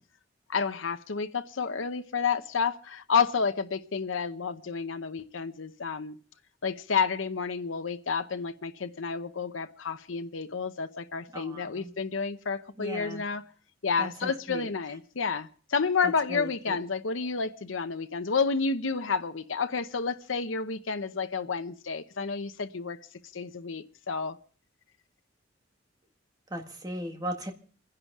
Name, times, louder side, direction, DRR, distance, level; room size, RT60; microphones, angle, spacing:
voice 1, 0.5-6.2 6.6-13.4 13.8-23.0 23.3-24.4, left 5 dB, 90° left, 0.8 m, -30 dB
voice 2, 11.3-11.9 12.8-13.2 14.0-14.7 16.3-16.8 26.5-27.5, right 1 dB, 20° right, 1.8 m, -37 dB
28.5 x 11.0 x 3.6 m
head